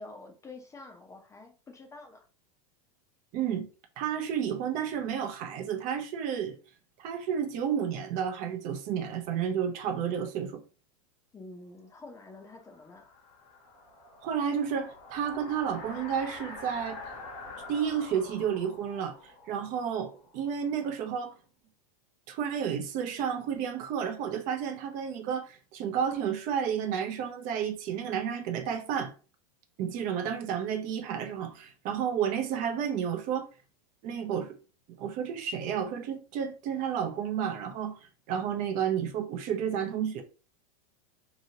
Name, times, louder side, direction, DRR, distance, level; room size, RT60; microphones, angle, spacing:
voice 1, 0.0-2.2 11.3-13.1, left 2 dB, 15° left, 0.6 m, -47 dB
voice 2, 3.3-3.7 4.0-6.6 7.0-10.6 14.2-17.0 17.7-21.3 22.3-29.1 29.8-33.5 34.0-34.6 35.0-38.0 38.3-40.2, right 8 dB, 40° right, 0.6 m, -31 dB
sound 1, 12.0-20.8, left 3 dB, 55° left, 1.1 m, -46 dB
2.9 x 2.7 x 2.8 m
supercardioid pair, 130°, 20 cm